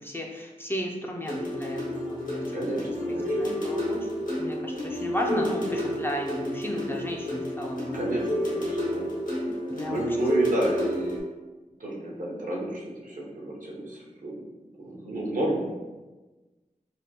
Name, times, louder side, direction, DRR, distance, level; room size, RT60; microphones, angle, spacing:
voice 1, 0.0-2.6 3.1-4.1 4.4-8.0 9.7-10.2, equal, 15° left, 0 dB, 0.4 m, -34 dB
sound 1, 1.3-11.2, left 1 dB, 75° left, 0.9 m, -30 dB
voice 2, 2.5-3.6 7.9-9.1 9.4-9.5 9.9-11.2 11.8-14.4 14.8-15.8, right 1 dB, 75° right, -3 dB, 0.8 m, -31 dB
3.4 x 2.2 x 2.7 m, 1.2 s
wide cardioid pair, 85°, 14 cm